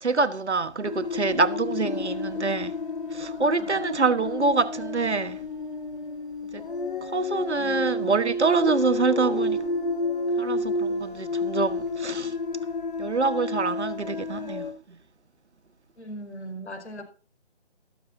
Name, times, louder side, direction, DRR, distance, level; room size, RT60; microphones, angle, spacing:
voice 1, 0.0-2.8 3.1-5.5 6.5-6.7 7.0-9.7 10.4-12.3 13.0-15.0, right 4 dB, 75° right, 1.5 m, -26 dB
sound 1, 0.8-14.7, left 2 dB, 45° left, 3.0 m, -30 dB
voice 2, 3.2-3.8 7.5-8.2 16.0-17.0, right 1 dB, 75° left, 5.6 m, -41 dB
15.0 x 14.0 x 2.8 m
figure-of-eight pair, 160°, 35 cm